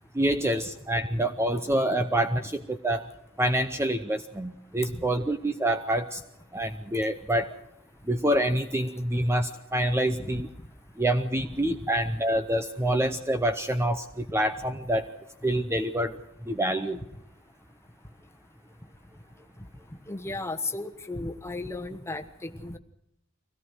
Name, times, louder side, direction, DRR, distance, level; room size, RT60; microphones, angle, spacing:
voice 1, 0.1-3.1 3.4-6.2 6.5-7.5 8.1-10.5 11.0-15.1 15.4-16.2 16.5-17.0, right 1 dB, 10° right, 8 dB, 0.7 m, -26 dB
voice 2, 20.1-22.8, left 2 dB, 15° left, 5 dB, 1.3 m, -35 dB
24.5 x 17.5 x 6.4 m, 0.80 s
head